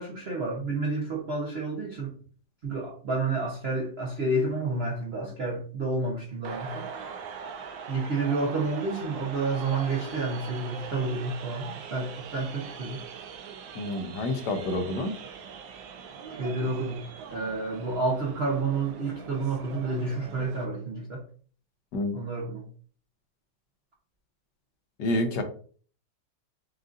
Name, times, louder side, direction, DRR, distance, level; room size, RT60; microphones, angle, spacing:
voice 1, 0.0-2.1 2.6-6.9 7.9-13.0 16.3-21.2 22.1-22.7, right 3 dB, 60° right, -2 dB, 0.6 m, -30 dB
sound 1, 6.4-20.6, right 6 dB, 85° right, 1.4 m, -41 dB
voice 2, 13.7-15.1 21.9-22.1 25.0-25.4, left 1 dB, 70° left, 6 dB, 1.3 m, -28 dB
6.5 x 2.6 x 2.5 m, 0.44 s
omnidirectional pair, 2.0 m